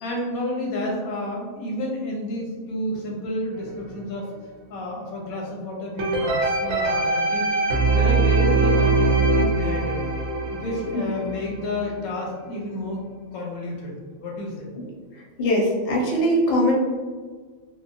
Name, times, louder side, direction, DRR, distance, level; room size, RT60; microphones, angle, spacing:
voice 1, 0.0-4.3 4.7-10.0 10.5-13.0 13.3-14.7, left 1 dB, 90° left, -2 dB, 1.1 m, -30 dB
sound 1, 6.0-12.0 12.5-12.6, right 3 dB, 80° right, 1.0 m, -22 dB
voice 2, 15.1-16.7, equal, 55° left, -2 dB, 0.7 m, -21 dB
3.0 x 2.2 x 2.5 m, 1.5 s
omnidirectional pair, 1.5 m